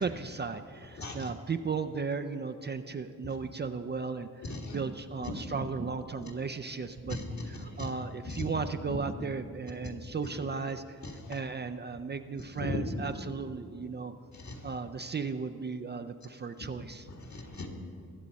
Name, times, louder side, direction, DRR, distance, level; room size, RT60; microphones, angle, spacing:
voice 1, 0.0-7.2 7.4-14.1 14.6-17.1, right 5 dB, 30° right, 7 dB, 0.4 m, -36 dB
voice 2, 4.4-4.8 5.2-5.3 5.6-5.7 7.1-7.3 7.6-7.7 8.3-8.5 8.9-9.0 11.0-11.3 12.6-12.8 14.3-14.6 17.1-17.7, left 3 dB, 55° left, 3 dB, 1.9 m, -38 dB
21.5 x 7.4 x 4.1 m, 2.5 s
cardioid pair, 90°, 34 cm